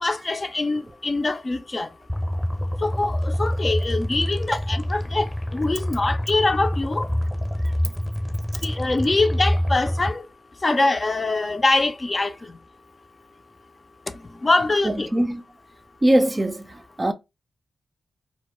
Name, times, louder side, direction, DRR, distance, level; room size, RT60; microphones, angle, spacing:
voice 1, 0.0-1.9 2.8-7.1 8.6-10.2 10.6-12.3 14.4-15.1, left 2 dB, 40° left, 0.4 m, -23 dB
sound 1, 2.1-10.1, equal, 5° left, 0.7 m, -26 dB
voice 2, 14.8-15.4 16.0-16.7 17.0-17.1, right 1 dB, 30° right, 0.4 m, -21 dB
2.1 x 2.1 x 2.9 m
supercardioid pair, 40°, 0 cm